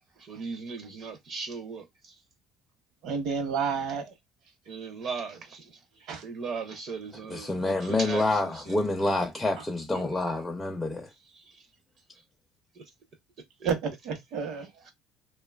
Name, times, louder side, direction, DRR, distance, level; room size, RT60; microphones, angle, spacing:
voice 1, 0.2-2.1 4.7-5.8 6.2-8.9 9.9-10.1 11.3-11.7 12.7-12.8 13.6-13.7, right 4 dB, 45° right, 0.5 m, -38 dB
voice 2, 3.0-4.1 6.1-6.2 9.6-9.7 13.6-14.9, right 6 dB, 65° right, 0.8 m, -31 dB
voice 3, 7.3-11.1, left 2 dB, 10° left, 0.4 m, -27 dB
2.7 x 2.2 x 2.2 m
cardioid pair, 145°, 0 cm